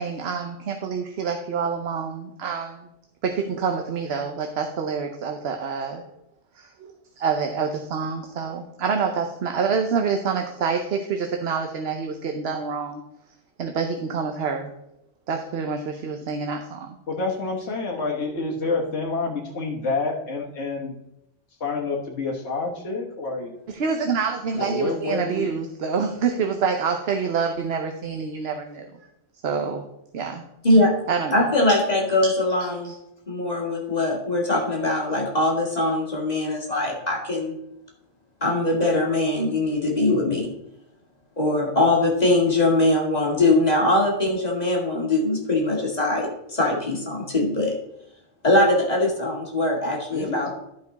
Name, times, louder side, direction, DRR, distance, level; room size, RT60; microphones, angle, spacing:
voice 1, 0.0-2.9 3.2-6.0 6.6-13.0 13.6-14.7 15.3-16.9 23.7-28.9 29.4-29.8 30.1-30.4 31.1-31.5 32.2-32.3 32.8-33.0, right 5 dB, 65° right, 4 dB, 1.0 m, -27 dB
voice 2, 17.1-20.9 21.6-23.5 24.5-25.6 50.1-50.5, left 3 dB, 65° left, -2 dB, 1.6 m, -28 dB
voice 3, 31.3-32.9 33.3-37.6 38.4-40.5 41.4-47.7 48.4-50.5, left 2 dB, 35° left, -2 dB, 2.2 m, -22 dB
11.5 x 5.3 x 4.0 m, 0.83 s
omnidirectional pair, 1.2 m